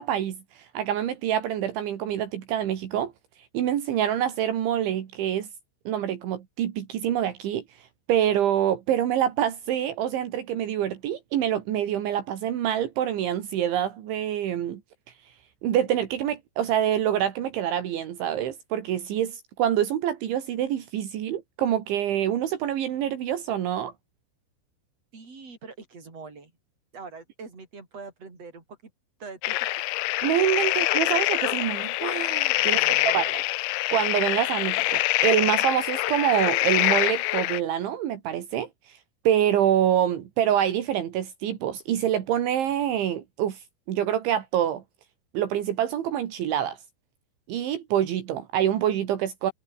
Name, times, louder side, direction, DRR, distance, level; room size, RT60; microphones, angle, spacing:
voice 1, 0.0-3.1 3.5-5.5 5.9-14.8 15.6-23.9 30.2-33.4 33.9-39.0 39.3-44.8 45.3-46.8 47.5-49.5, right 10 dB, 75° right, 4.5 m, -26 dB
voice 2, 25.1-26.5 26.9-28.8 29.2-29.8 30.6-30.8 32.6-33.2, right 4 dB, 30° right, 7.1 m, -43 dB
sound 1, 29.4-37.6, left 18 dB, 80° left, 3.1 m, -25 dB
omnidirectional pair, 5.6 m